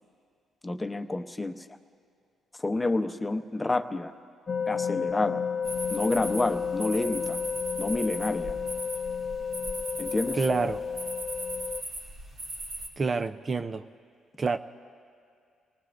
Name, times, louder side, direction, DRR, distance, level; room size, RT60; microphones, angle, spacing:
voice 1, 0.6-1.7 2.6-4.1 4.7-5.4 5.9-7.4 7.8-8.6 10.0-10.4, left 2 dB, 15° left, 8 dB, 0.8 m, -29 dB
sound 1, 4.5-11.8, left 6 dB, 45° left, 0.4 m, -32 dB
sound 2, 5.6-12.9, right 1 dB, 75° right, 4.5 m, -39 dB
voice 2, 10.3-10.8 13.0-13.8 14.4-14.6, right 4 dB, 35° right, 9 dB, 0.5 m, -27 dB
29.0 x 19.0 x 2.6 m, 2.3 s
cardioid pair, 90°, 0 cm